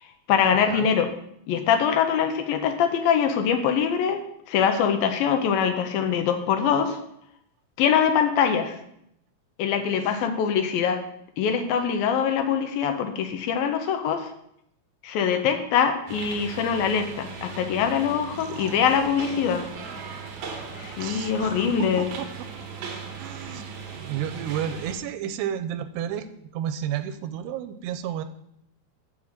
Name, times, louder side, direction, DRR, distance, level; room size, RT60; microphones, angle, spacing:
voice 1, 0.3-1.1 1.5-4.2 4.5-7.0 7.8-8.8 9.6-11.0 11.4-14.3 15.0-19.7 20.8-22.1, left 7 dB, 75° left, 6 dB, 2.3 m, -23 dB
sound 1, 16.1-25.0, right 5 dB, 70° right, 3.2 m, -38 dB
voice 2, 18.4-18.8 21.0-22.3 23.2-26.3 26.5-28.2, right 10 dB, 90° right, 11 dB, 2.8 m, -32 dB
7.5 x 6.1 x 7.4 m, 0.76 s
omnidirectional pair, 4.6 m